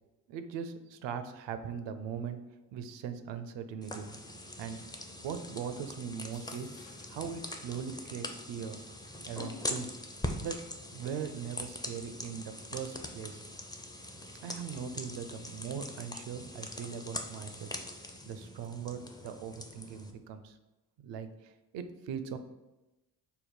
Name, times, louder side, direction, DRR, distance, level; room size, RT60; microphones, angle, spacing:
voice 1, 0.3-2.4 2.7-4.1 4.6-4.8 5.2-6.7 7.1-8.8 9.3-10.0 10.4-10.6 10.9-13.4 14.4-17.7 18.3-20.6 21.0-22.4, right 7 dB, 65° right, 9 dB, 0.6 m, -40 dB
sound 1, 3.8-20.1, left 1 dB, 10° left, 0.4 m, -42 dB
sound 2, 6.2-7.4, left 9 dB, 70° left, 0.5 m, -58 dB
3.5 x 2.1 x 4.2 m, 1.0 s
hypercardioid pair, 45°, 48 cm